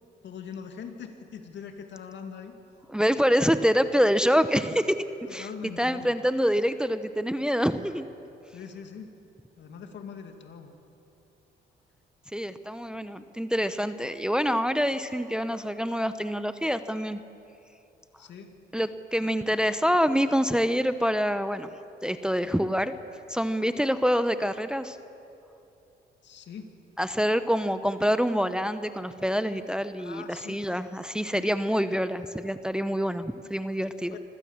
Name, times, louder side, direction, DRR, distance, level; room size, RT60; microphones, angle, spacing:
voice 1, 0.2-2.6 5.3-6.1 8.5-9.1 9.6-10.7 18.2-18.5 19.2-19.4 26.2-26.7 30.0-30.8 31.3-31.5 33.8-34.2, left 6 dB, 65° left, 5 dB, 2.3 m, -42 dB
voice 2, 2.9-5.5 5.8-8.1 12.3-17.2 18.7-21.7 22.0-22.9 23.3-25.0 27.0-34.2, equal, 5° right, 11 dB, 0.7 m, -26 dB
25.5 x 15.5 x 7.4 m, 2.8 s
cardioid pair, 90°, 20 cm